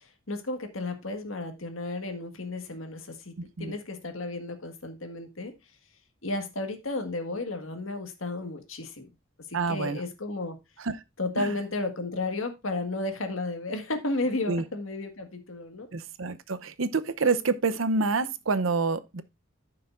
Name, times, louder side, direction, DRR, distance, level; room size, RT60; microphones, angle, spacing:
voice 1, 0.3-3.3 3.6-5.5 6.2-9.0 9.7-10.6 11.2-15.9, left 2 dB, 85° left, 1.7 m, -33 dB
voice 2, 9.5-10.0 10.8-11.0 11.4-11.6 14.5-14.6 15.9-19.2, right 4 dB, 80° right, 0.7 m, -27 dB
14.0 x 5.8 x 2.5 m
head